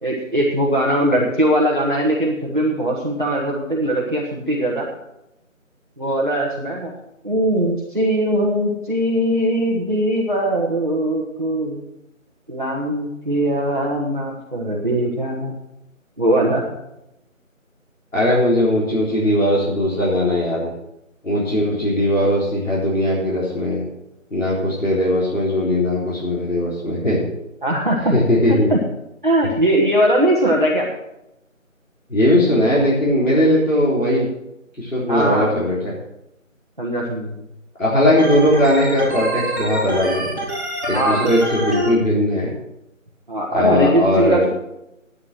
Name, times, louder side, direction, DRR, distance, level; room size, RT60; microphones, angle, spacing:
voice 1, 0.0-4.9 6.0-6.9 7.2-11.8 12.5-15.6 16.2-16.8 27.6-28.1 28.7-28.8 29.2-30.9 35.1-35.5 36.8-37.3 40.9-41.4 43.3-44.5, right 1 dB, 40° right, -4 dB, 1.5 m, -20 dB
voice 2, 18.1-20.7 21.2-23.9 24.3-27.2 28.1-28.7 32.1-34.3 34.8-35.9 37.8-40.3 40.9-42.5 43.5-44.4, left 1 dB, 70° left, -6 dB, 3.8 m, -19 dB
Organ, 38.2-41.9, right 1 dB, 15° right, 2.7 m, -26 dB
9.6 x 9.5 x 6.1 m, 0.87 s
figure-of-eight pair, 180°, 40 cm